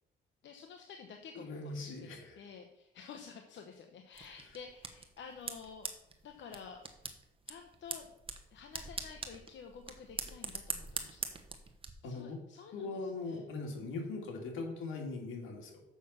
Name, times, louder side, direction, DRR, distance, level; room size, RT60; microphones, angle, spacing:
voice 1, 0.4-5.9 6.2-7.0 7.5-8.1 8.5-11.3 12.0-13.5, left 6 dB, 65° left, 5 dB, 1.0 m, -51 dB
voice 2, 1.3-2.3 12.0-12.4 12.7-15.8, left 3 dB, 85° left, 2 dB, 2.3 m, -40 dB
sound 1, 4.1-11.9, right 4 dB, 25° right, 1.2 m, -44 dB
7.0 x 6.2 x 7.3 m, 0.88 s
cardioid pair, 90°, 20 cm